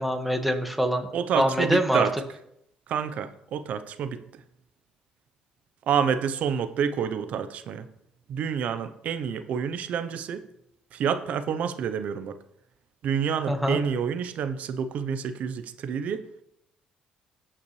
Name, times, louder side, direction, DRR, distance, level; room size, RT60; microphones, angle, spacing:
voice 1, 0.0-1.1 1.3-2.0 13.5-13.8, equal, ahead, 5 dB, 1.8 m, -24 dB
voice 2, 1.1-2.1 2.9-4.2 5.9-7.9 8.3-10.4 10.9-12.3 13.0-16.2, right 7 dB, 65° right, 10 dB, 0.9 m, -28 dB
16.5 x 5.8 x 3.3 m, 0.78 s
supercardioid pair, 70°, 3 cm